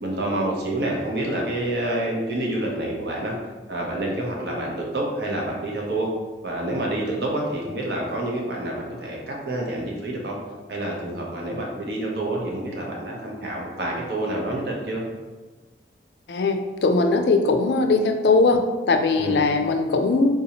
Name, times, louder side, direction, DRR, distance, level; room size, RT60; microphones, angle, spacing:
voice 1, 0.0-3.4 3.7-6.1 6.4-10.4 10.7-15.0 19.2-19.3, right 1 dB, 65° right, -2 dB, 0.8 m, -28 dB
voice 2, 16.3-20.3, left 3 dB, 70° left, 6 dB, 0.3 m, -20 dB
3.7 x 2.7 x 2.9 m, 1.3 s
head